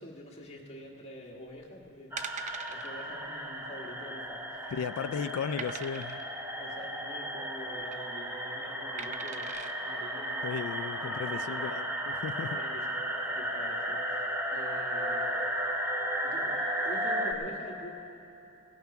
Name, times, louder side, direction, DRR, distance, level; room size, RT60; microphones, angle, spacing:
voice 1, 0.0-2.4 2.7-4.6 5.2-5.3 6.5-10.6 11.0-11.9 12.5-12.9 13.2-15.4 16.2-17.9, left 1 dB, 30° left, -2 dB, 1.6 m, -46 dB
sound 1, 1.5-1.7 2.2-2.9 3.2-3.4 3.7-3.8 4.3-4.8 5.6-6.3 7.6-8.0 9.0-9.7 10.3-10.4, right 6 dB, 30° right, 0.5 m, -42 dB
sound 2, 2.1-17.3, right 1 dB, 10° right, 0.8 m, -34 dB
voice 2, 4.7-6.2 10.4-11.9 12.1-12.6, left 7 dB, 70° left, 12 dB, 0.3 m, -35 dB
16.5 x 9.4 x 5.9 m, 3.0 s
head